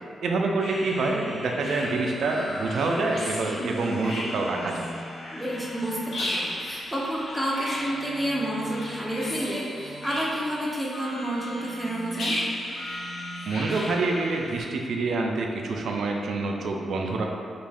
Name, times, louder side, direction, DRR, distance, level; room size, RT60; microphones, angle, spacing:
voice 1, 0.2-4.8 13.5-17.2, right 3 dB, 70° right, 1 dB, 0.3 m, -27 dB
sound 1, 0.6-14.6, left 1 dB, 70° left, 0.6 m, -35 dB
voice 2, 5.3-12.3, right 1 dB, 5° right, -4 dB, 0.4 m, -30 dB
2.5 x 2.2 x 3.3 m, 2.3 s
wide cardioid pair, 130°, 0 cm